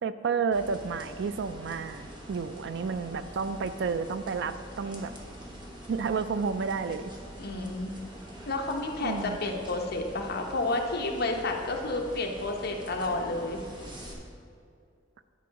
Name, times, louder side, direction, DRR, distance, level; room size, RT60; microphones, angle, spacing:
voice 1, 0.0-5.1 5.9-7.1 9.0-9.4, right 5 dB, 65° right, 12 dB, 0.4 m, -31 dB
sound 1, 0.5-14.1, equal, 25° right, 1.2 m, -45 dB
voice 2, 7.4-7.9 8.5-13.6, left 2 dB, 55° left, 2 dB, 0.9 m, -31 dB
10.0 x 4.7 x 5.2 m, 2.3 s
head